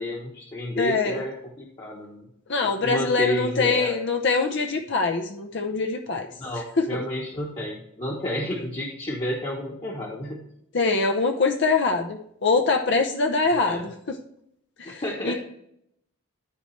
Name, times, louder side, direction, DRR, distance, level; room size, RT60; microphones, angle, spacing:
voice 1, 0.0-2.3 2.8-4.0 6.4-10.4 13.5-13.9 14.8-15.3, left 1 dB, 25° left, -4 dB, 1.2 m, -31 dB
voice 2, 0.8-1.2 2.5-6.3 6.8-7.0 10.7-14.2 14.8-15.3, left 4 dB, 55° left, 3 dB, 0.7 m, -24 dB
12.5 x 4.6 x 3.2 m, 0.74 s
head